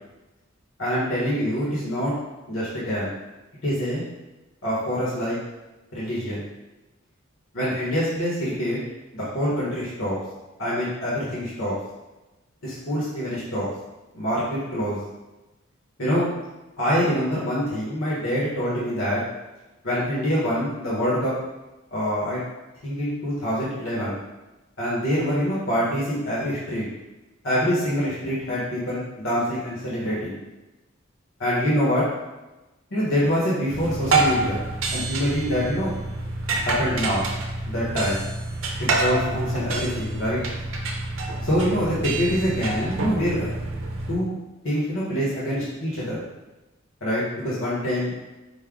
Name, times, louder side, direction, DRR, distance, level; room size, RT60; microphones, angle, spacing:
voice 1, 0.8-2.1 2.5-3.1 3.6-4.0 4.6-5.4 5.9-6.4 7.5-8.8 9.1-10.2 10.6-11.7 12.6-13.7 14.1-15.0 16.0-16.3 16.8-19.2 19.8-21.3 21.9-22.4 22.8-24.2 24.8-26.8 27.4-30.4 31.4-32.0 32.9-34.6 34.9-35.9 36.5-37.3 37.7-38.2 38.8-40.4 41.4-43.5 44.1-44.3 44.6-46.2 47.0-48.1, equal, 75° left, -8 dB, 1.2 m, -25 dB
sound 1, 33.7-44.2, right 2 dB, 80° right, 0.6 m, -27 dB
5.4 x 2.2 x 3.7 m, 1.1 s
head